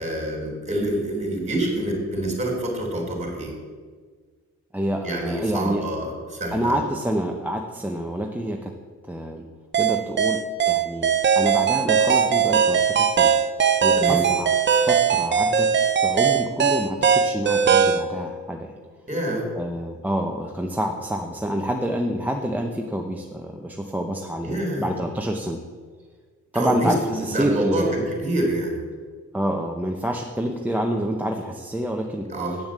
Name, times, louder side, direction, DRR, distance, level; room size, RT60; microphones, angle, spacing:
voice 1, 0.0-3.5 5.0-6.7 14.0-14.2 19.1-19.5 24.4-24.9 26.5-28.8 32.3-32.6, right 1 dB, 25° right, 1 dB, 3.4 m, -26 dB
voice 2, 4.7-5.8 6.5-8.7 9.1-9.4 9.8-13.3 13.8-15.7 16.0-18.8 19.6-24.5 24.8-25.6 26.5-27.9 29.3-32.3, equal, 5° right, 2 dB, 0.8 m, -27 dB
sound 1, 9.7-18.0, right 7 dB, 40° right, 0.7 m, -19 dB
8.3 x 7.1 x 7.3 m, 1.5 s
cardioid pair, 90°, 30 cm